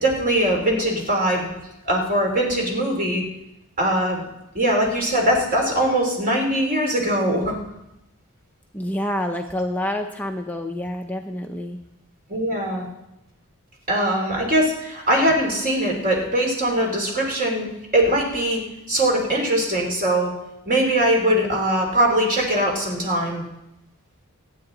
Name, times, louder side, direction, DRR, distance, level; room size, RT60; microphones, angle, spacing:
voice 1, 0.0-1.5 1.8-3.2 3.8-4.3 4.5-7.5 12.3-12.8 13.9-17.7 17.9-18.6 18.9-20.3 20.6-23.4, right 1 dB, 40° right, 0 dB, 3.2 m, -21 dB
voice 2, 8.7-11.8, left 1 dB, 10° left, 3 dB, 0.6 m, -27 dB
24.5 x 9.0 x 3.9 m, 0.90 s
head